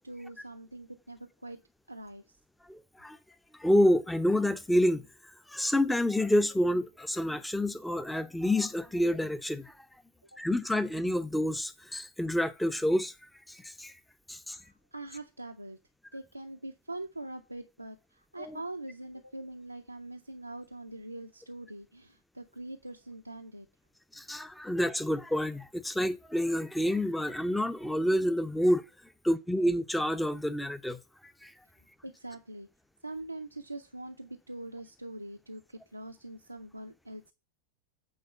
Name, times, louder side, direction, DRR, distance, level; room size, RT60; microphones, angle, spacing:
voice 1, 0.0-1.6 1.9-2.2 14.5-15.8 16.1-23.7 32.0-32.7 33.0-37.3, right 2 dB, 85° right, 0.5 m, -43 dB
voice 2, 2.7-3.2 3.6-5.1 5.5-9.7 10.4-13.1 13.5-13.9 14.3-14.6 18.4-18.6 24.1-28.8 29.2-31.0 31.4-31.5, left 1 dB, 5° left, 0.6 m, -28 dB
8.7 x 3.6 x 6.5 m
figure-of-eight pair, 90°, 0 cm